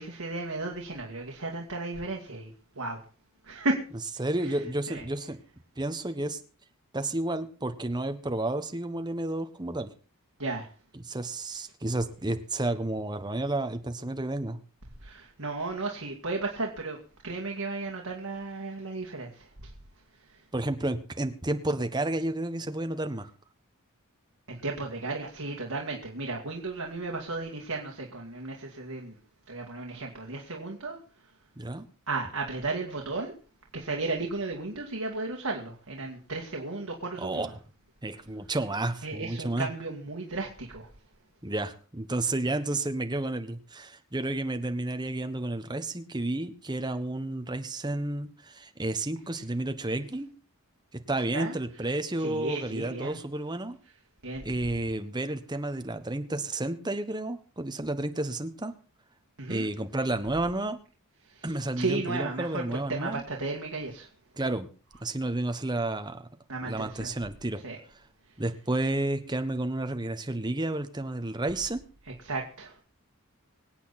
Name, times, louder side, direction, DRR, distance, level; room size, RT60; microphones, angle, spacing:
voice 1, 0.0-3.0 3.4-3.8 4.4-5.0 10.4-10.7 15.0-17.0 17.2-19.7 20.1-20.4 24.5-29.2 29.5-31.0 32.1-33.4 33.7-37.5 39.0-40.9 51.3-51.9 52.2-53.2 54.2-54.5 59.4-59.7 61.2-64.1 66.5-67.1 67.6-67.8 72.0-72.8, right 3 dB, 75° right, 1 dB, 2.3 m, -34 dB
voice 2, 4.2-5.4 5.8-6.4 6.9-9.9 11.1-14.6 20.5-23.3 31.6-31.9 37.2-37.5 38.0-39.7 41.4-50.3 50.9-53.8 54.4-58.7 59.5-60.8 61.4-63.2 64.4-64.7 65.0-66.2 66.6-67.6 68.4-71.8, right 2 dB, 20° right, 8 dB, 1.2 m, -31 dB
25.0 x 8.4 x 4.2 m, 0.38 s
head